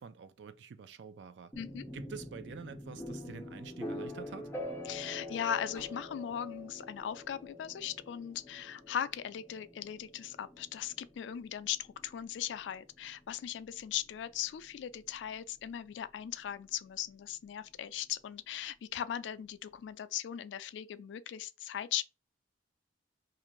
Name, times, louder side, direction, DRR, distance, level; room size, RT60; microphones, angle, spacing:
voice 1, 0.0-1.5 1.9-4.5, right 6 dB, 75° right, 0.4 m, -47 dB
sound 1, 1.5-15.3, left 1 dB, 15° left, 0.6 m, -45 dB
voice 2, 4.8-22.0, left 10 dB, 90° left, 0.3 m, -38 dB
2.6 x 2.4 x 2.9 m
head